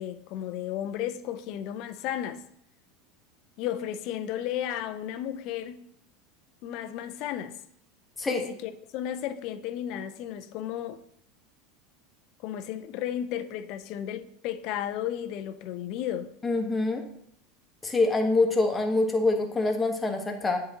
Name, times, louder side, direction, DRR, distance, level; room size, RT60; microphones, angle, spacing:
voice 1, 0.0-2.4 3.6-5.9 6.6-7.6 8.3-11.0 12.4-16.3, left 11 dB, 55° left, 0.5 m, -34 dB
voice 2, 16.4-17.0 17.8-20.6, left 2 dB, 15° left, 1.2 m, -25 dB
9.4 x 3.7 x 2.9 m
hypercardioid pair, 85°, 0 cm